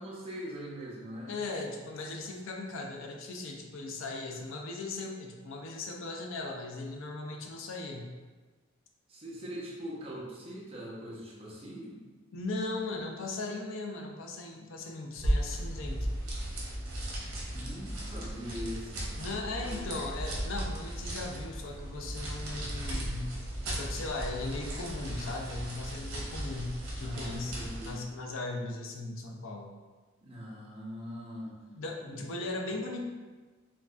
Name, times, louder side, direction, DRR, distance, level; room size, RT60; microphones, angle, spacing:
voice 1, 0.0-1.4 9.1-12.0 17.5-19.1 19.6-19.9 27.0-28.0 30.2-31.5 32.0-32.2, equal, 30° right, -5 dB, 0.8 m, -42 dB
voice 2, 1.3-8.1 12.3-16.1 19.2-23.3 23.7-29.7 31.7-33.0, left 2 dB, 70° left, 2 dB, 0.5 m, -38 dB
sound 1, 15.1-28.0, right 1 dB, 75° right, 0.9 m, -36 dB
4.6 x 2.3 x 2.5 m, 1.3 s
head